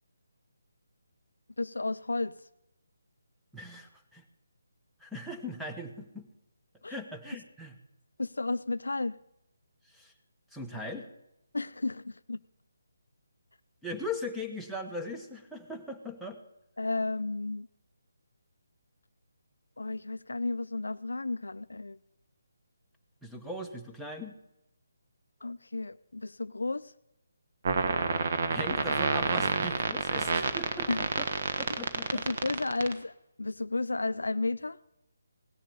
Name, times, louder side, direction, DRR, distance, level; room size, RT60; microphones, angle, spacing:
voice 1, 1.6-2.4 6.8-6.9 8.2-9.2 11.5-12.4 16.8-17.7 19.8-22.0 25.4-26.9 30.9-31.1 31.7-31.8 32.1-33.1 33.4-34.8, left 2 dB, 85° left, 16 dB, 0.4 m, -32 dB
voice 2, 3.5-4.2 5.0-6.2 6.9-7.7 9.9-10.1 10.5-11.1 13.8-16.4 23.2-24.3 28.5-30.9 31.2-31.3 31.6-32.2, left 1 dB, ahead, 2 dB, 1.1 m, -39 dB
sound 1, 27.7-32.9, right 5 dB, 45° right, 1.2 m, -28 dB
17.0 x 7.3 x 6.9 m, 0.87 s
figure-of-eight pair, 155°, 0 cm